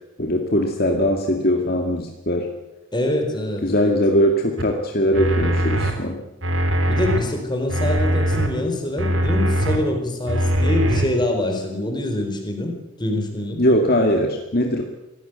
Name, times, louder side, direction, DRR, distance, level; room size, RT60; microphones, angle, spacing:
voice 1, 0.2-2.5 3.6-6.2 13.6-14.8, equal, 45° left, 3 dB, 2.2 m, -20 dB
voice 2, 2.9-3.9 6.8-13.6, left 1 dB, 20° left, 4 dB, 4.5 m, -25 dB
sound 1, 4.6-4.7 5.1-5.9 6.4-7.2 7.7-8.5 9.0-9.8 10.3-11.1, equal, 65° right, 3.5 m, -21 dB
24.5 x 16.5 x 8.2 m, 0.99 s
head